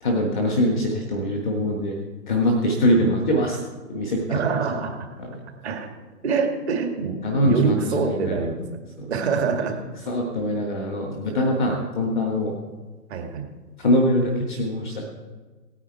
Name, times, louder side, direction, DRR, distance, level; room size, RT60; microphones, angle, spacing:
voice 1, 0.0-2.0 2.3-3.6 3.9-4.6 5.2-5.4 7.2-8.4 9.0-9.1 10.1-12.6 13.8-15.0, equal, 5° right, 1 dB, 0.5 m, -23 dB
voice 2, 4.3-5.1 5.6-5.9 6.2-8.6 9.1-9.8 13.1-13.5, right 5 dB, 40° right, 4 dB, 2.1 m, -25 dB
17.0 x 9.3 x 4.6 m, 1.3 s
figure-of-eight pair, 145°, 48 cm